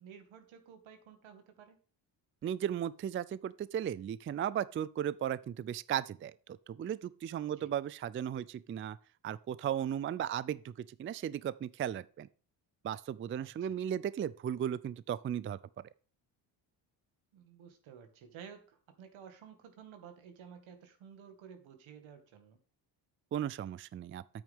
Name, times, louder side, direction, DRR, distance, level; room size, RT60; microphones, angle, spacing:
voice 1, 0.0-1.8 7.6-7.7 13.4-13.8 17.3-22.6, right 7 dB, 75° right, 2.2 m, -53 dB
voice 2, 2.4-9.0 9.2-12.3 12.8-15.6 23.3-24.2, right 10 dB, 30° right, 0.3 m, -36 dB
9.2 x 8.6 x 3.6 m
cardioid pair, 80°, 47 cm